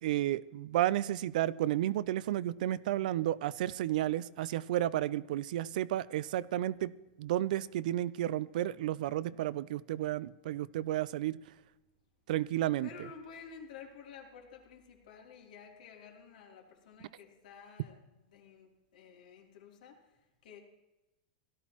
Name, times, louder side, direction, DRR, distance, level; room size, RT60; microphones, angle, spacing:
voice 1, 0.0-11.4 12.3-12.9, right 13 dB, 70° right, 19 dB, 0.4 m, -32 dB
voice 2, 12.8-20.6, left 6 dB, 80° left, 0 dB, 3.2 m, -52 dB
17.5 x 13.0 x 3.0 m, 1.1 s
supercardioid pair, 145°, 4 cm